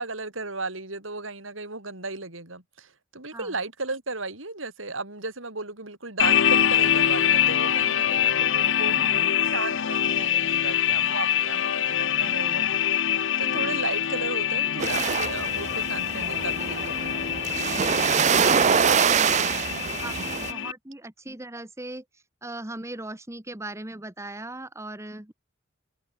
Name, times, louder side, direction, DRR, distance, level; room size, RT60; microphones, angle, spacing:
voice 1, 0.0-9.0 9.4-17.6 18.5-19.1 19.3-19.8 20.2-20.3, right 3 dB, 80° right, 6.3 m, -35 dB
sound 1, 6.2-20.7, left 10 dB, 65° left, 0.7 m, -25 dB
voice 2, 8.8-9.3 13.4-13.8 18.3-19.6 20.0-25.3, right 1 dB, 15° right, 1.3 m, -39 dB
sound 2, 14.8-20.5, right 7 dB, 35° right, 0.5 m, -24 dB
head